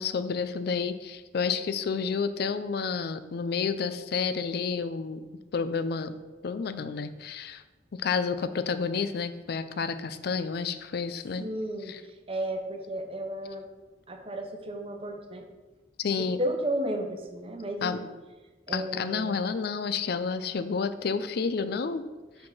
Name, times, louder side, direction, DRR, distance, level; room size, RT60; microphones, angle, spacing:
voice 1, 0.0-5.2 5.5-6.1 6.4-7.6 7.9-11.4 11.9-12.0 16.0-16.4 17.8-18.0 18.7-22.1, left 5 dB, 60° left, 11 dB, 0.4 m, -30 dB
voice 2, 11.4-13.7 14.1-15.5 16.2-18.1 18.7-19.4, right 1 dB, 30° right, 4 dB, 0.7 m, -33 dB
5.1 x 4.6 x 5.4 m, 1.2 s
head